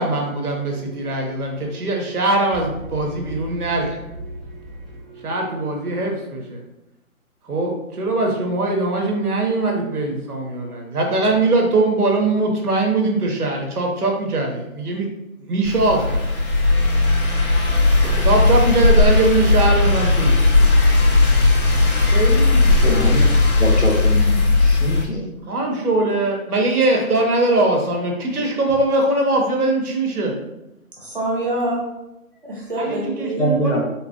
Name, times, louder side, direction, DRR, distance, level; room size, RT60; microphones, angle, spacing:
voice 1, 0.0-4.0 5.2-6.6 7.5-15.1 15.4-16.2 18.2-20.4 22.0-23.3 25.5-30.4 32.8-33.8, right 2 dB, 90° right, 1 dB, 1.1 m, -21 dB
sound 1, 0.7-6.1, right 1 dB, ahead, 0.4 m, -38 dB
sound 2, 15.6-25.0, left 3 dB, 80° left, 1.4 m, -16 dB
voice 2, 22.8-25.3 33.4-33.8, equal, 50° left, 0 dB, 0.7 m, -23 dB
voice 3, 31.0-31.9 32.4-33.5, right 1 dB, 40° right, -4 dB, 0.8 m, -26 dB
3.6 x 2.3 x 2.8 m, 0.91 s
hypercardioid pair, 175°, 44 cm